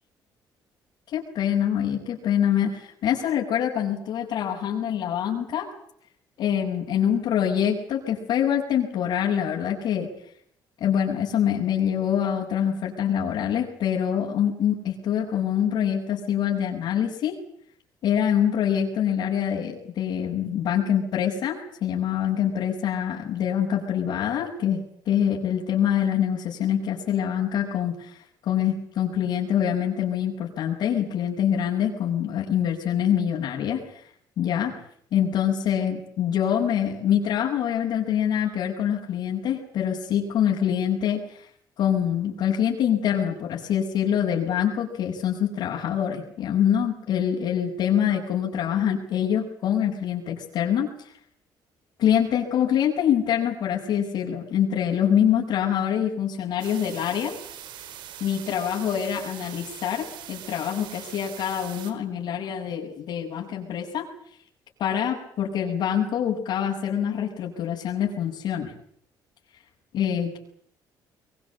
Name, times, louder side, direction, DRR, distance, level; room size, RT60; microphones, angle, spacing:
voice 1, 1.1-5.7 6.4-10.1 10.8-17.4 18.0-24.8 25.1-34.0 34.4-34.8 35.1-41.5 41.8-50.9 52.0-57.3 58.2-64.1 64.8-68.7 69.9-70.4, left 9 dB, 70° left, -4 dB, 7.6 m, -25 dB
sound 1, 56.6-61.9, right 11 dB, 80° right, 4.3 m, -42 dB
25.0 x 23.0 x 8.8 m, 0.65 s
cardioid pair, 115°, 8 cm